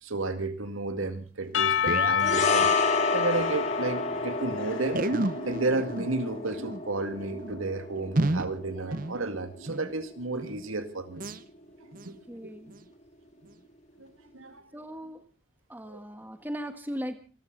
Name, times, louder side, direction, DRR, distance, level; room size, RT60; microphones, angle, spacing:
voice 1, 0.0-2.7 3.1-5.1 5.5-11.2 12.0-12.2 12.4-12.5 14.0-14.7 15.8-16.0, right 3 dB, 90° right, 9 dB, 2.2 m, -32 dB
sound 1, 1.1-1.2 1.4-3.6 3.9-4.0 4.1-4.3 4.9-10.0 10.4-10.7 11.1-11.4 11.9-12.2 12.7-12.8 13.5-13.6, right 2 dB, 45° right, 0.8 m, -33 dB
Percussion / Church bell, 1.5-5.7, left 8 dB, 75° left, 1.3 m, -29 dB
sound 2, 2.2-10.7 10.9-11.1, left 3 dB, 35° left, 2.4 m, -31 dB
voice 2, 12.1-12.8 14.7-15.2 15.7-17.2, equal, 10° right, 8 dB, 1.5 m, -38 dB
27.5 x 13.5 x 3.9 m, 0.34 s
head